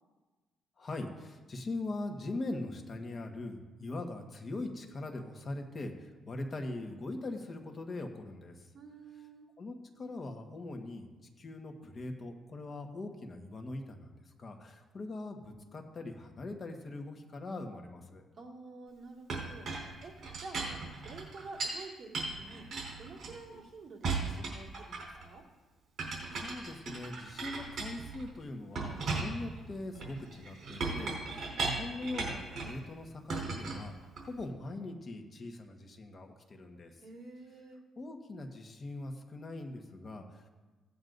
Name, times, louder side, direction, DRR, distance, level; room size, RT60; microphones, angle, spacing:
voice 1, 0.8-8.7 9.6-11.1 11.4-18.2 26.4-33.9 34.3-36.9 38.0-40.5, left 2 dB, 40° left, 3 dB, 1.4 m, -41 dB
voice 2, 8.7-9.5 18.4-19.7 20.0-20.1 20.4-22.7 23.0-25.4 37.0-37.8, right 3 dB, 40° right, -1 dB, 2.1 m, -49 dB
Chink clink, 19.3-21.8 22.1-23.6 24.0-25.3 26.0-28.3 28.8-32.8 33.3-34.4, right 3 dB, 60° right, 3.9 m, -37 dB
16.5 x 9.3 x 2.6 m, 1.3 s
cardioid pair, 90°, 0 cm